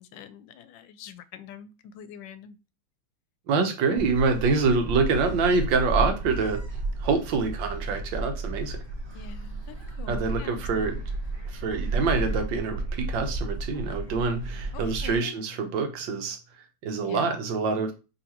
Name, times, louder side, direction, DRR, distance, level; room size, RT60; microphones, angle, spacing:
voice 1, 0.0-2.6 9.1-11.1 14.7-15.3 17.1-17.3, left 9 dB, 80° left, 12 dB, 1.2 m, -44 dB
voice 2, 3.5-6.6 7.0-8.8 10.1-11.0 11.5-16.4 16.8-17.9, right 4 dB, 80° right, 6 dB, 1.6 m, -26 dB
Gull seagull, 4.0-15.2, right 2 dB, 15° right, 1.2 m, -32 dB
5.2 x 3.1 x 2.9 m, 0.31 s
omnidirectional pair, 2.0 m